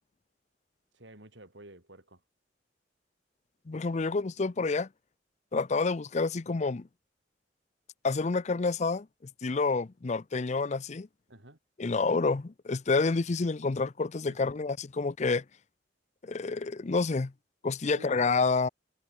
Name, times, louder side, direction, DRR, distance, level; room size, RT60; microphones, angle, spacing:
voice 1, 0.9-2.2 11.3-11.6 14.3-14.5 17.9-18.3, right 1 dB, 80° right, 7.8 m, -51 dB
voice 2, 3.7-4.9 5.5-6.8 8.0-9.1 9.4-11.1 11.8-15.4 16.2-17.3 17.6-18.7, left 4 dB, 40° left, 0.5 m, -28 dB
head